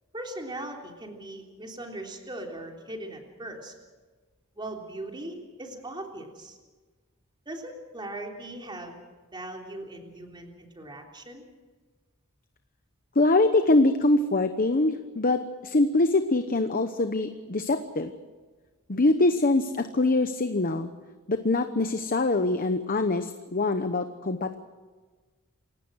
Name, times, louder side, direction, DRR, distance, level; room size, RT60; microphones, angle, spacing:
voice 1, 0.1-3.7 4.6-6.6 7.4-9.0 9.3-11.4, right 1 dB, 20° right, 1 dB, 3.5 m, -39 dB
voice 2, 13.1-18.1 18.9-20.9 21.3-24.6, left 2 dB, 40° left, 8 dB, 1.0 m, -24 dB
28.5 x 17.0 x 6.4 m, 1.4 s
head